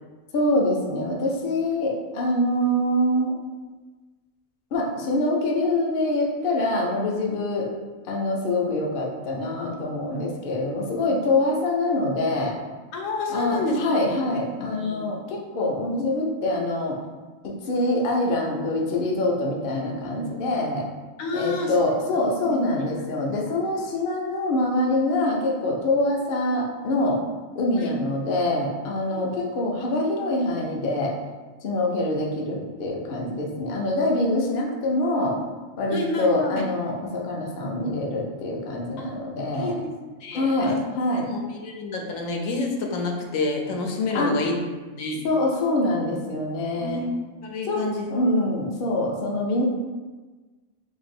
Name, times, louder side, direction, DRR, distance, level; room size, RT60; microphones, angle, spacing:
voice 1, 0.3-3.4 4.7-7.7 8.1-12.6 13.3-17.0 17.4-20.8 21.3-27.2 27.5-31.1 31.6-35.4 35.8-39.8 40.3-41.3 44.1-44.4 45.2-47.0 47.7-47.8 48.1-49.6, left 1 dB, 55° left, -1 dB, 0.7 m, -25 dB
voice 2, 12.9-13.8 14.1-14.2 14.4-14.5 14.8-15.1 21.2-21.9 22.4-22.6 27.8-27.9 29.1-29.3 35.9-36.6 39.0-39.1 39.6-39.8 40.2-40.8 41.2-44.6 44.9-45.2 46.8-47.2 47.4-48.1, left 3 dB, 80° left, 1 dB, 1.0 m, -29 dB
2.9 x 2.6 x 4.2 m, 1.3 s
omnidirectional pair, 1.4 m